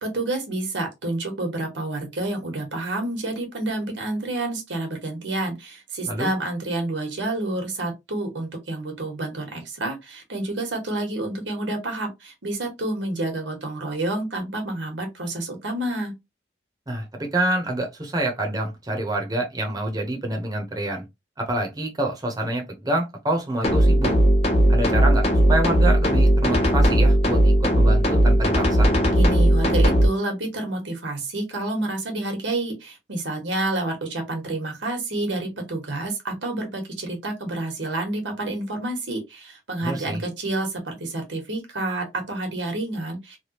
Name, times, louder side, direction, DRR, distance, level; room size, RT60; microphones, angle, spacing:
voice 1, 0.0-16.1 29.2-43.4, right 2 dB, 90° right, 1.3 m, -29 dB
voice 2, 16.9-21.0 21.4-24.2 24.7-28.9 39.8-40.2, right 1 dB, 20° right, 0.8 m, -27 dB
sound 1, 23.6-30.1, equal, 35° left, 0.8 m, -17 dB
3.3 x 2.3 x 2.9 m
head